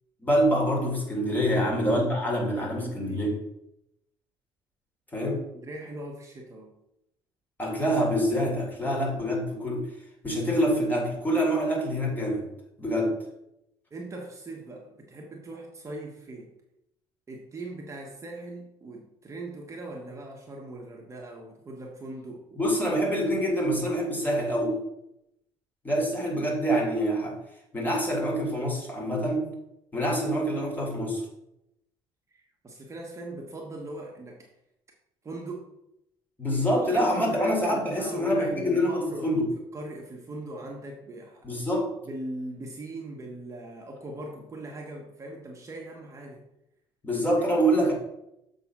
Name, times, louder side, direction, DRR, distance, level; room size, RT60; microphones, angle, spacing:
voice 1, 0.2-3.4 5.1-5.5 7.6-9.9 10.2-12.5 12.8-13.2 22.6-24.8 25.8-27.4 27.7-29.5 29.9-31.2 36.4-39.4 41.4-41.9 47.0-47.9, equal, 15° left, -1 dB, 2.8 m, -26 dB
voice 2, 1.5-3.3 5.2-6.8 13.9-16.6 17.3-22.6 32.3-34.5 35.2-35.7 36.5-39.4 39.7-41.7 42.0-46.4 47.1-47.5, right 2 dB, 30° right, 0 dB, 1.3 m, -40 dB
7.0 x 3.9 x 6.0 m, 0.83 s
cardioid pair, 100°, 11 cm